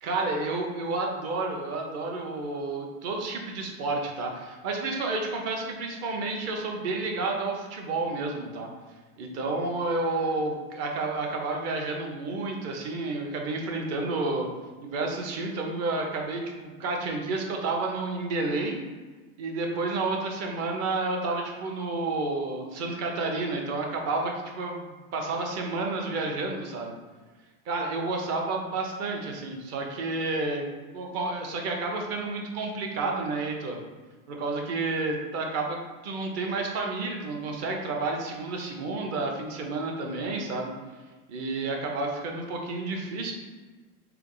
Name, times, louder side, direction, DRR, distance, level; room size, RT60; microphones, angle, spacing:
voice 1, 0.0-8.7 9.2-14.5 14.8-18.8 19.4-26.9 27.7-30.7 30.9-33.8 34.3-40.7 41.3-43.3, right 3 dB, 35° right, 1 dB, 0.7 m, -30 dB
3.7 x 3.4 x 3.9 m, 1.3 s
supercardioid pair, 145°, 47 cm